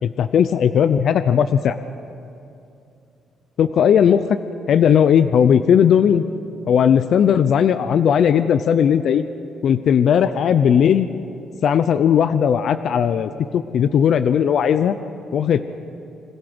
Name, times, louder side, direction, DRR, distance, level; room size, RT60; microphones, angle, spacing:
voice 1, 0.0-1.8 3.6-4.2 4.7-6.2 6.7-9.2 9.6-11.1 11.6-15.0 15.3-15.6, left 8 dB, 65° left, 11 dB, 0.6 m, -17 dB
26.0 x 16.0 x 6.1 m, 2.6 s
cardioid pair, 90°, 0 cm